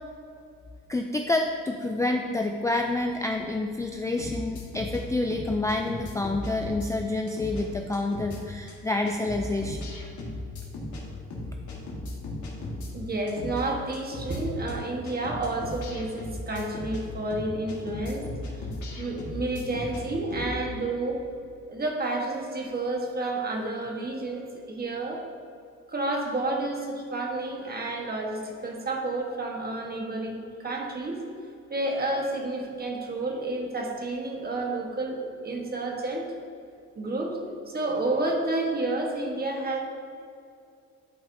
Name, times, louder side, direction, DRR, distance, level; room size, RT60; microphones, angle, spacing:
voice 1, 0.9-10.0, left 2 dB, 10° left, 3 dB, 0.3 m, -28 dB
sound 1, 4.2-5.0 5.3-6.9 7.3-7.6 7.9-8.4 8.7-8.8 9.1-11.0 11.3-12.9 13.3-13.6 13.9-14.4 14.7-14.8 15.1-17.0 17.3-20.0 20.3-20.5, left 2 dB, 75° left, 1.6 m, -36 dB
voice 2, 12.9-18.3 19.0-21.2 21.7-25.2 25.9-31.2 31.7-36.3 37.0-37.4 37.7-39.8, right 2 dB, 30° right, 1 dB, 1.3 m, -30 dB
11.0 x 4.7 x 2.7 m, 2.4 s
cardioid pair, 90°, 30 cm